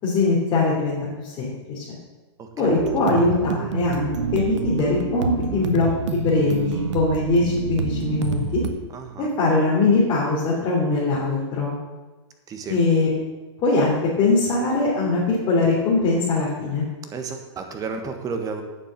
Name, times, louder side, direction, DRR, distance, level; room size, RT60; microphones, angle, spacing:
voice 1, 0.0-1.8 2.6-8.6 9.2-11.7 12.7-13.1 13.6-16.8, left 3 dB, 30° left, -6 dB, 3.3 m, -21 dB
sound 1, 2.8-8.7, right 6 dB, 80° right, 1.2 m, -27 dB
voice 2, 8.9-9.3 12.5-12.8 17.1-18.6, right 5 dB, 25° right, 6 dB, 1.5 m, -32 dB
9.0 x 7.4 x 7.6 m, 1.2 s
hypercardioid pair, 135°, 15 cm